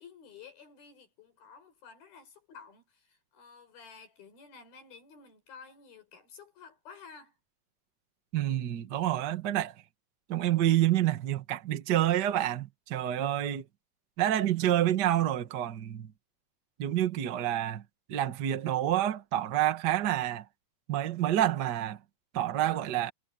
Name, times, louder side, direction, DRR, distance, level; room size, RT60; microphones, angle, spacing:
voice 1, 0.0-7.4, left 6 dB, 90° left, 7.1 m, -52 dB
voice 2, 8.3-9.7 10.3-13.6 14.2-16.1 16.8-17.8 18.1-20.4 20.9-22.0 22.3-23.1, right 12 dB, 70° right, 1.0 m, -28 dB
omnidirectional pair, 4.2 m